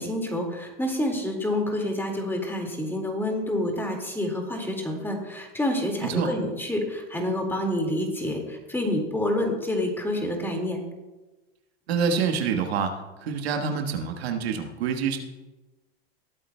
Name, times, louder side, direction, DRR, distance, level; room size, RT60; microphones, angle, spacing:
voice 1, 0.0-10.8, left 1 dB, 5° left, 2 dB, 2.0 m, -28 dB
voice 2, 11.9-15.2, right 6 dB, 85° right, 5 dB, 1.4 m, -27 dB
19.5 x 8.8 x 2.2 m, 1.1 s
supercardioid pair, 120°, 31 cm